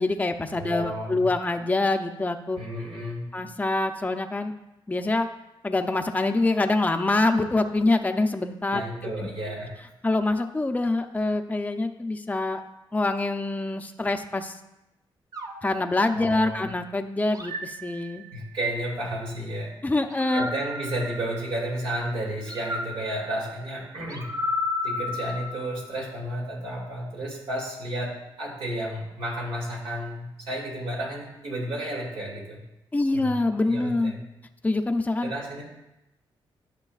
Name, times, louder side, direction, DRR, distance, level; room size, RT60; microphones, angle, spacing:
voice 1, 0.0-2.6 3.3-4.5 4.9-5.3 5.6-9.3 10.0-12.6 12.9-14.6 15.6-18.2 19.8-20.5 32.9-34.1 34.6-35.3, left 2 dB, 15° left, 6 dB, 0.6 m, -25 dB
voice 2, 0.5-1.3 2.6-3.3 8.7-9.7 16.1-16.7 18.3-19.7 20.3-24.3 24.8-32.6 33.1-34.2 35.2-35.6, right 1 dB, 80° right, -3 dB, 2.5 m, -32 dB
sound 1, 15.3-16.7 17.3-18.6 20.1-21.8 22.5-26.0, left 2 dB, 40° right, 0.8 m, -34 dB
11.5 x 6.0 x 2.4 m, 0.92 s
cardioid pair, 75°, 9 cm